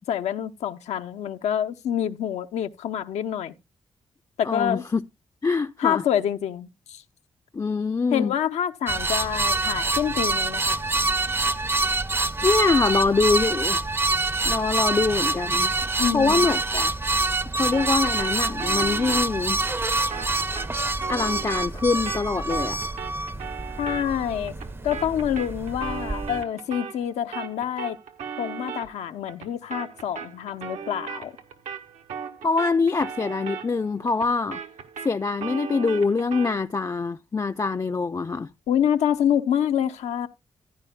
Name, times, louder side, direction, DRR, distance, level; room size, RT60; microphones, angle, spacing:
voice 1, 0.1-3.5 4.4-4.8 5.8-7.0 8.1-10.8 16.0-16.5 23.8-24.5 24.8-28.0 28.4-31.3 38.7-40.3, left 9 dB, 85° left, 0.8 m, -26 dB
voice 2, 4.4-5.0 5.4-6.0 7.5-8.3 12.4-13.8 14.4-15.7 16.1-16.9 17.5-19.6 21.1-22.9 32.4-34.6 35.0-38.5, left 4 dB, 30° left, 0.5 m, -24 dB
Old plastic ventilator squeaking in a window, 8.9-26.4, right 2 dB, 20° right, 0.6 m, -26 dB
sound 1, 17.7-27.1 27.3-36.6, right 7 dB, 85° right, 1.5 m, -38 dB
14.5 x 10.0 x 2.2 m
supercardioid pair, 55°, 11 cm